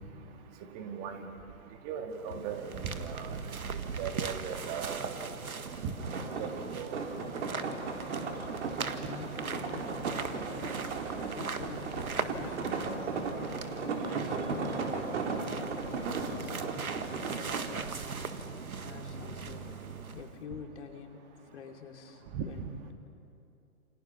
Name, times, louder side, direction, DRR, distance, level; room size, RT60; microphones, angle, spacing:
voice 1, 0.7-1.2 1.8-3.4 3.7-5.3 5.8-5.9 6.4-7.0 22.3-22.4, right 7 dB, 30° right, 5 dB, 1.9 m, -38 dB
sound 1, 2.1-20.4, right 5 dB, 75° right, 1.7 m, -39 dB
sound 2, 6.0-17.7, right 4 dB, 55° right, 4.1 m, -36 dB
voice 2, 9.0-10.7 11.3-13.0 13.8-17.4 18.8-21.2 21.5-22.9, left 6 dB, 50° left, 3 dB, 2.9 m, -47 dB
28.5 x 26.5 x 5.9 m, 2.7 s
figure-of-eight pair, 130°, 43 cm